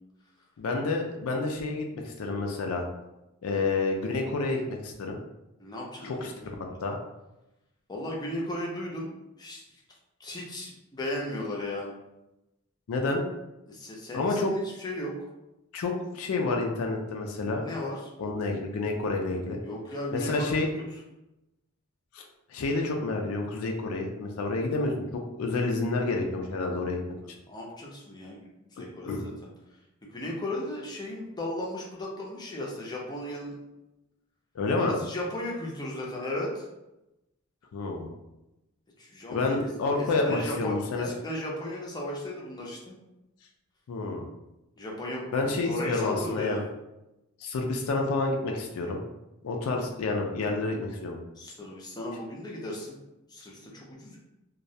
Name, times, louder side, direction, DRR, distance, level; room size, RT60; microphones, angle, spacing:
voice 1, 0.6-2.8 3.4-5.2 6.0-7.0 12.9-13.2 14.1-14.5 15.7-17.6 18.2-19.6 20.1-20.7 22.1-22.2 22.5-24.9 25.4-27.0 29.1-29.3 34.5-34.9 37.7-38.1 39.3-41.1 43.9-44.3 45.3-46.6 47.4-49.0 49.4-51.2, left 3 dB, 90° left, 1 dB, 0.4 m, -29 dB
voice 2, 5.6-6.5 7.9-9.1 9.4-9.6 10.2-11.9 13.7-15.3 17.6-18.1 19.6-20.7 27.5-29.3 30.0-33.6 34.8-36.7 39.0-39.7 39.9-43.0 44.8-46.6 51.4-53.0 53.3-54.2, left 1 dB, 20° left, -2 dB, 0.4 m, -36 dB
2.3 x 2.1 x 2.6 m, 0.93 s
head